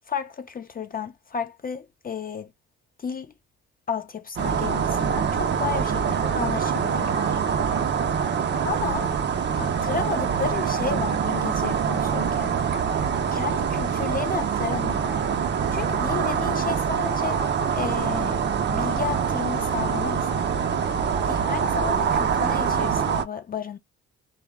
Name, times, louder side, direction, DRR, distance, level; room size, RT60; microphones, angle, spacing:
voice 1, 0.1-2.5 3.0-3.3 3.9-7.4 8.6-9.1 9.6-12.5 13.3-15.2 15.7-17.5 17.8-18.4 18.7-20.3 21.3-23.8, left 6 dB, 30° left, 0.4 m, -32 dB
sound 1, 4.4-23.2, right 7 dB, 35° right, 0.4 m, -25 dB
2.1 x 2.0 x 3.3 m
cardioid pair, 90°, 30 cm